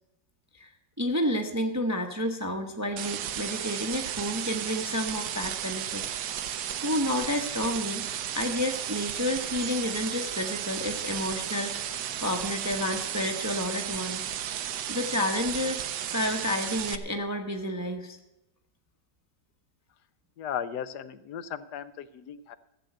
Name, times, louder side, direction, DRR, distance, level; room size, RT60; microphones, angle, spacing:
voice 1, 1.0-6.3 6.8-8.1 8.3-14.3 14.9-18.2, left 1 dB, 15° right, 4 dB, 0.7 m, -30 dB
sound 1, 3.0-17.0, right 10 dB, 75° right, 1.3 m, -34 dB
voice 2, 20.4-22.6, left 9 dB, 75° left, 13 dB, 1.2 m, -36 dB
14.5 x 7.8 x 7.7 m, 0.92 s
omnidirectional pair, 1.9 m